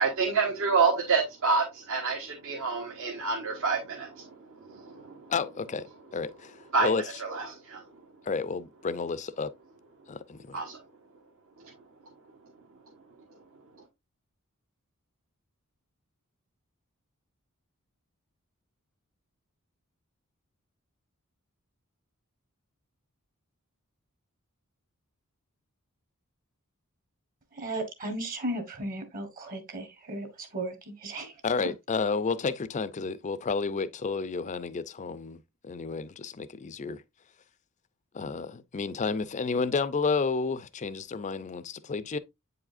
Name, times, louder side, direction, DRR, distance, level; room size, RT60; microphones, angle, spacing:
voice 1, 0.0-5.3 6.7-6.9 7.2-7.9 10.5-10.8 11.6-11.7, right 4 dB, 65° right, 1.3 m, -28 dB
voice 2, 5.3-5.9 6.1-7.0 8.2-9.5 10.1-10.6 31.4-37.0 38.1-42.2, left 4 dB, 35° left, 0.4 m, -31 dB
voice 3, 27.5-31.3 31.6-31.7, right 1 dB, 40° right, 1.4 m, -35 dB
8.1 x 4.9 x 2.5 m
head